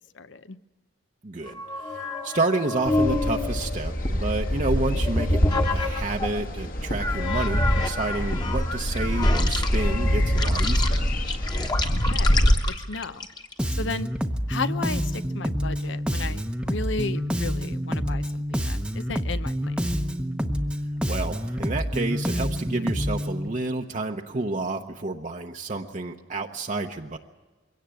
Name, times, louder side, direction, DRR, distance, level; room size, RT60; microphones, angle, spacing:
voice 1, 0.1-0.6 11.9-12.4 12.7-13.3 13.8-14.1 14.5-19.7, left 3 dB, 75° left, 13 dB, 0.8 m, -34 dB
voice 2, 1.2-5.4 5.7-10.9 21.1-27.2, right 2 dB, 40° right, 3 dB, 0.8 m, -30 dB
sound 1, 1.5-6.4 7.0-13.6, left 2 dB, 20° left, 1.3 m, -28 dB
sound 2, 2.9-12.6, equal, 45° left, 1.5 m, -25 dB
Bass guitar, 13.6-23.5, equal, 5° right, 0.8 m, -28 dB
22.5 x 17.0 x 7.8 m, 1.3 s
head